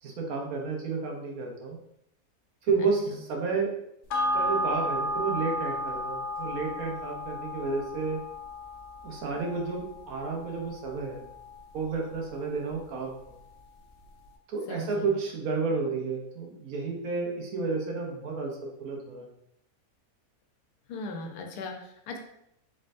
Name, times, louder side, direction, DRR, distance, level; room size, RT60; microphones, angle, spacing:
voice 1, 0.0-1.8 2.6-3.7 4.3-8.2 9.0-11.2 11.7-13.4 14.5-19.3, right 4 dB, 70° right, 0 dB, 1.2 m, -31 dB
sound 1, 4.1-12.9 13.2-13.3, left 1 dB, 60° left, 0.7 m, -34 dB
voice 2, 14.7-15.1 20.9-22.2, left 3 dB, 85° left, 3 dB, 1.3 m, -38 dB
4.2 x 3.7 x 2.5 m, 0.77 s
omnidirectional pair, 1.6 m